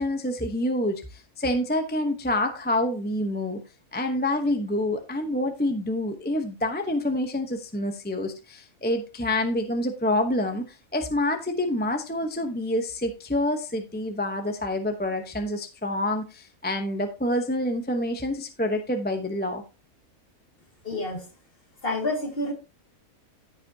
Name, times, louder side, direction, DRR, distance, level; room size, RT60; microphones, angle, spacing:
voice 1, 0.0-3.6 3.9-19.6, left 1 dB, 10° left, 5 dB, 0.8 m, -27 dB
voice 2, 20.8-21.3 21.8-22.5, left 2 dB, 40° left, 2 dB, 2.3 m, -28 dB
14.5 x 5.4 x 2.8 m, 0.30 s
omnidirectional pair, 1.5 m